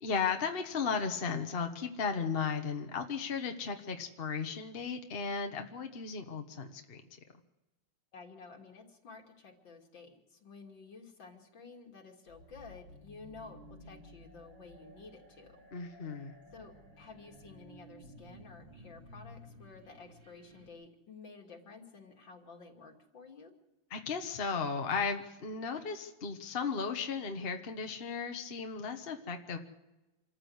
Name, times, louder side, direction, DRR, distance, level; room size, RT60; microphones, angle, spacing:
voice 1, 0.0-7.0 15.7-16.3 23.9-29.6, left 5 dB, 35° left, 5 dB, 1.3 m, -35 dB
voice 2, 8.1-15.6 16.5-23.5, left 4 dB, 70° left, 1 dB, 3.4 m, -52 dB
sound 1, 12.3-20.7, left 1 dB, 80° right, 5.3 m, -55 dB
27.0 x 14.0 x 8.0 m, 1.0 s
omnidirectional pair, 2.1 m